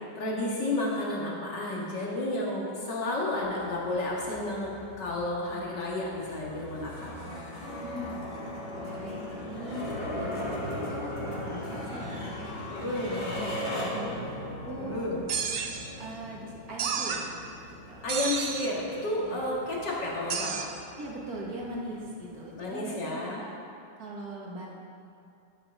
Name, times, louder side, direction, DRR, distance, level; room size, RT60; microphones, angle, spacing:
voice 1, 0.2-4.7 5.0-7.1 12.7-13.2 14.8-15.2 18.0-20.6 22.6-23.4, left 1 dB, 60° left, -4 dB, 2.4 m, -31 dB
sound 1, 3.4-22.7, left 1 dB, 80° left, 2.5 m, -39 dB
voice 2, 7.8-8.3 8.7-12.3 12.9-14.3 14.6-15.0 16.0-17.3 17.7-18.1 19.2-19.4 21.0-23.6 24.0-24.7, right 1 dB, 50° right, -3 dB, 2.1 m, -40 dB
sound 2, 15.3-15.9 16.8-17.3 18.1-18.7 20.3-20.6, right 6 dB, 85° right, 0.6 m, -31 dB
11.5 x 6.1 x 6.1 m, 2.5 s
omnidirectional pair, 2.1 m